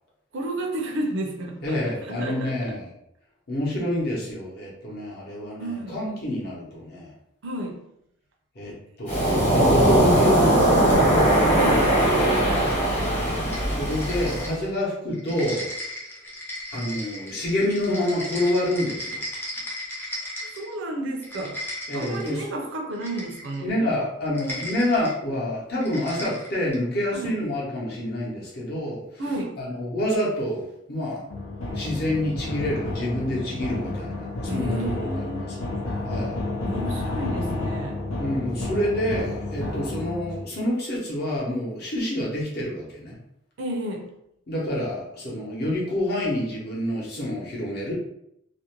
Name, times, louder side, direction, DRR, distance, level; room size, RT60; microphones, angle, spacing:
voice 1, 0.3-2.8 5.6-5.9 7.4-7.8 11.6-12.5 20.4-21.6 21.9-23.7 27.1-27.4 29.2-29.5 34.5-35.7 36.6-38.0 43.6-44.1, right 1 dB, 65° right, 2 dB, 0.5 m, -32 dB
voice 2, 1.6-2.9 3.5-7.1 8.5-11.0 13.7-15.7 16.7-19.2 21.9-22.4 23.6-29.2 29.6-31.2 31.7-35.5 36.0-36.4 38.2-43.2 44.5-47.9, left 1 dB, 50° left, -4 dB, 0.7 m, -27 dB
Waves surf, 9.1-14.5, right 1 dB, 30° left, 1.0 m, -20 dB
sound 1, 13.5-14.8 15.1-20.7 21.1-22.4 23.0-23.6 24.3-25.1 25.8-26.8, left 1 dB, 10° left, 0.4 m, -36 dB
sound 2, 31.3-40.4, left 2 dB, 90° left, 0.6 m, -30 dB
2.4 x 2.1 x 2.9 m, 0.79 s
head